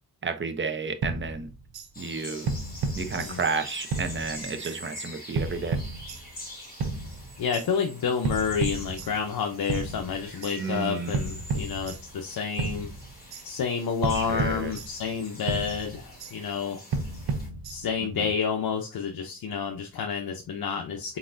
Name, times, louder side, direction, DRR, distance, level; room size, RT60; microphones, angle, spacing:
voice 1, 0.2-1.5 2.0-2.5 3.0-5.8 10.6-11.1 14.1-14.8 18.0-18.3, right 4 dB, 30° right, 8 dB, 0.7 m, -32 dB
sound 1, 1.0-1.9 2.5-3.6 3.9-4.8 5.3-6.4 6.8-7.7 8.2-9.4 9.7-10.6 11.1-12.3 12.6-13.4 14.0-15.2 15.5-16.3 16.9-18.1, right 3 dB, 80° right, 0.7 m, -32 dB
sound 2, 1.9-17.5, left 1 dB, 25° left, 2.5 m, -45 dB
voice 2, 7.4-12.9 13.4-16.8 17.7-21.2, left 6 dB, 70° left, 3 dB, 0.7 m, -29 dB
4.3 x 4.0 x 2.5 m, 0.30 s
wide cardioid pair, 85°, 37 cm